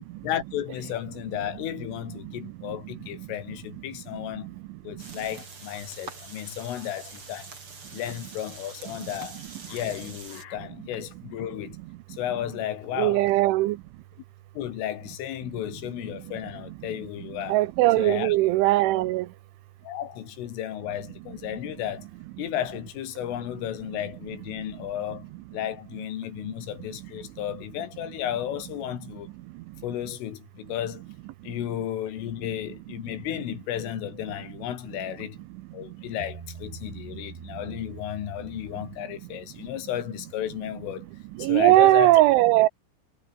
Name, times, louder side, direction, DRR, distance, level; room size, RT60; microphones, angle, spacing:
voice 1, 0.2-4.5 4.8-7.5 7.9-9.4 9.7-11.8 12.1-13.2 14.6-17.6 18.0-18.4 19.8-22.1 22.4-25.2 25.5-29.3 29.8-31.0 31.4-35.4 35.7-41.1 41.4-42.2, left 11 dB, 85° left, 4.8 m, -33 dB
sound 1, 5.0-10.4, right 4 dB, 30° right, 4.9 m, -44 dB
voice 2, 12.9-13.8 17.5-19.3 41.4-42.7, right 17 dB, 80° right, 3.3 m, -19 dB
Bass guitar, 36.2-39.6, right 6 dB, 60° right, 6.7 m, -44 dB
omnidirectional pair, 5.6 m